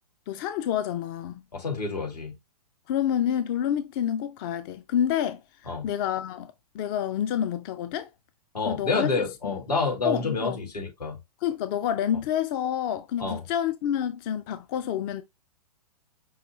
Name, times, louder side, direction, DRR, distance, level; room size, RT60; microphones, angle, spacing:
voice 1, 0.3-1.4 2.9-8.1 8.7-9.2 9.4-9.6 10.0-10.6 11.4-15.2, left 10 dB, 35° left, 0.4 m, -28 dB
voice 2, 1.5-2.3 5.7-5.9 8.5-11.2 13.2-13.4, left 4 dB, 80° left, 2.2 m, -28 dB
5.6 x 2.8 x 2.7 m
figure-of-eight pair, 110°, 20 cm